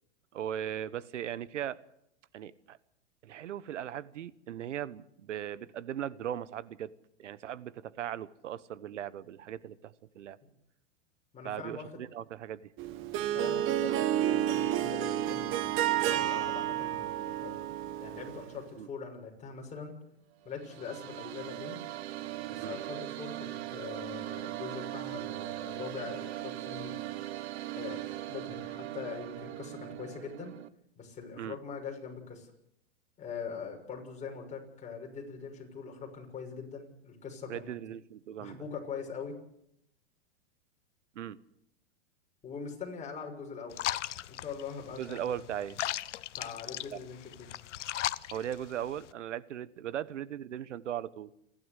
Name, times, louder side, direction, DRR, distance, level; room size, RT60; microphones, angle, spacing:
voice 1, 0.3-1.8 2.3-2.8 3.2-6.9 7.2-10.4 11.4-12.7 18.8-18.9 22.6-22.8 31.4-31.6 37.5-38.6 41.1-41.4 45.0-45.8 46.9-47.0 48.3-51.3, right 10 dB, 85° right, 17 dB, 1.2 m, -38 dB
voice 2, 11.3-11.9 13.3-17.5 18.0-19.9 20.4-21.8 22.5-26.9 27.8-30.5 31.0-32.5 33.2-37.7 38.4-39.3 42.4-43.8 44.3-45.3 46.3-47.5, left 6 dB, 20° left, 2 dB, 6.5 m, -42 dB
Harp, 12.8-18.6, right 12 dB, 35° right, 1.5 m, -30 dB
sound 1, 20.4-30.7, right 15 dB, 65° right, 1.4 m, -40 dB
sound 2, 43.7-49.1, left 13 dB, 80° left, 0.9 m, -38 dB
28.5 x 12.0 x 8.2 m, 0.76 s
hypercardioid pair, 130°, 35 cm